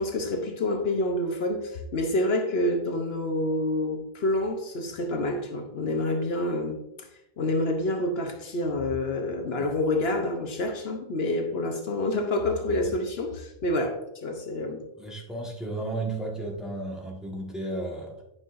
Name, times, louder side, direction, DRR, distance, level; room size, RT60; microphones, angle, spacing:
voice 1, 0.0-7.1 7.4-14.9, left 1 dB, 70° left, 1.1 m, -28 dB
voice 2, 15.0-18.2, right 2 dB, ahead, 1.3 m, -33 dB
9.4 x 5.5 x 2.5 m
omnidirectional pair, 1.1 m